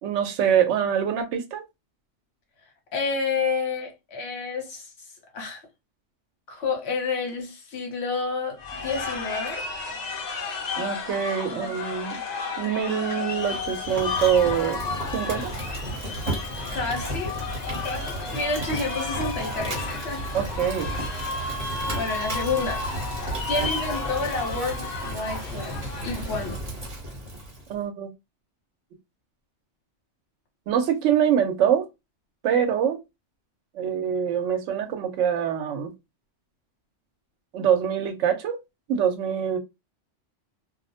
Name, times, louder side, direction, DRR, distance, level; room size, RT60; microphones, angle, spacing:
voice 1, 0.0-1.6 10.8-12.2 12.6-14.8 15.1-15.7 20.3-20.9 27.7-28.1 30.7-31.8 32.4-33.0 33.7-35.9 37.5-38.6 38.9-39.6, right 8 dB, 80° right, 0.9 m, -24 dB
voice 2, 2.9-4.9 5.3-5.6 6.5-9.6 11.5-11.7 16.7-17.4 17.8-20.2 21.5-21.6 21.9-23.1 23.5-25.7 26.0-26.6, left 4 dB, 65° left, 1.0 m, -30 dB
sound 1, 8.6-26.6, left 4 dB, 45° left, 0.6 m, -33 dB
Fire, 13.3-27.7, right 1 dB, 35° right, 1.0 m, -34 dB
2.3 x 2.0 x 2.7 m
omnidirectional pair, 1.2 m